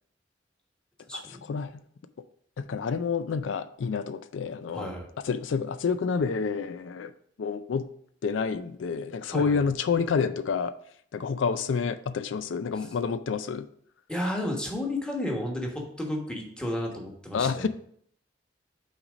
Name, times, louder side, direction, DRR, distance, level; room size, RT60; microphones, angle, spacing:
voice 1, 1.0-1.4 4.7-5.1 9.3-9.6 12.7-12.9 14.1-17.7, left 1 dB, 5° left, 0 dB, 1.3 m, -32 dB
voice 2, 2.6-4.9 5.2-7.1 7.4-7.9 8.2-10.7 11.1-13.6 17.3-17.7, left 5 dB, 90° left, 12 dB, 0.4 m, -28 dB
5.9 x 4.1 x 5.0 m, 0.64 s
head